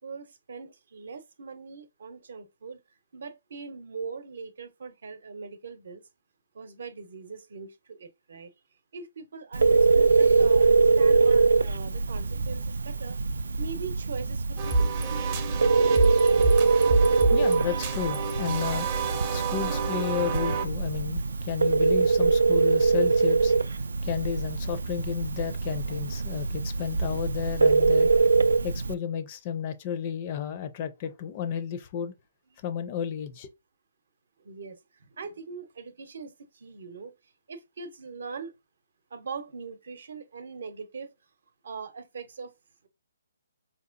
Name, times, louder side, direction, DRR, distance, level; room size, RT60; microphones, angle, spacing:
voice 1, 0.0-2.8 3.1-6.0 6.5-8.5 8.9-13.2 13.6-15.2 34.4-38.5 39.1-41.1 41.6-42.5, right 5 dB, 60° right, 0.7 m, -41 dB
Telephone, 9.5-28.9, right 4 dB, 85° right, 0.3 m, -23 dB
sound 1, 14.6-20.7, right 4 dB, 25° right, 0.6 m, -28 dB
voice 2, 16.9-28.1 28.6-32.1 32.6-33.5, left 8 dB, 30° left, 0.4 m, -33 dB
4.4 x 2.8 x 2.5 m
hypercardioid pair, 165°, 0 cm